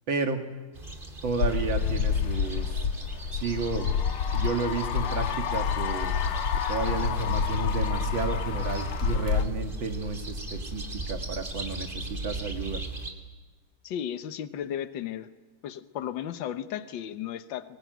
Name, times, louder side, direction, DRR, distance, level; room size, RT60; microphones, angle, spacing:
voice 1, 0.1-0.4 1.2-2.9 3.3-3.9 4.3-6.1 6.7-12.8, right 4 dB, 60° right, 5 dB, 2.8 m, -32 dB
sound 1, 0.7-13.1, right 2 dB, 25° right, 2.7 m, -38 dB
sound 2, 1.4-9.4, left 7 dB, 85° left, 2.1 m, -28 dB
voice 2, 13.8-15.3 15.6-17.8, left 10 dB, 65° left, 11 dB, 1.7 m, -34 dB
25.0 x 22.0 x 9.3 m, 1.3 s
omnidirectional pair, 2.3 m